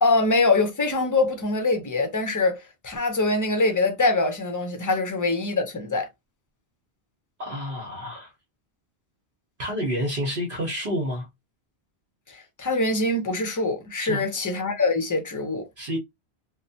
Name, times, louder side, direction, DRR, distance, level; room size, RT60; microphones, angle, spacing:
voice 1, 0.0-6.1 12.3-15.7, left 3 dB, 25° left, 0.5 m, -24 dB
voice 2, 7.4-8.3 9.6-11.3 14.0-14.2 15.8-16.0, equal, 55° right, 0.9 m, -29 dB
3.1 x 2.1 x 2.7 m
omnidirectional pair, 1.1 m